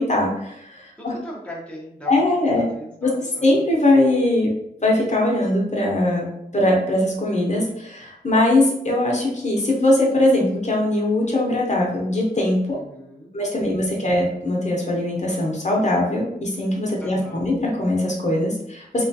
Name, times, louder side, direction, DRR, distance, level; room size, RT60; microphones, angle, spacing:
voice 1, 0.0-1.1 2.1-2.7 3.0-4.5 4.8-6.3 6.5-12.8 13.3-19.0, left 1 dB, 45° left, -2 dB, 0.8 m, -21 dB
voice 2, 1.0-3.6 12.7-13.3 13.7-14.1 17.0-17.5, equal, 5° left, -3 dB, 0.6 m, -39 dB
3.0 x 2.3 x 2.7 m, 0.77 s
wide cardioid pair, 75°, 17 cm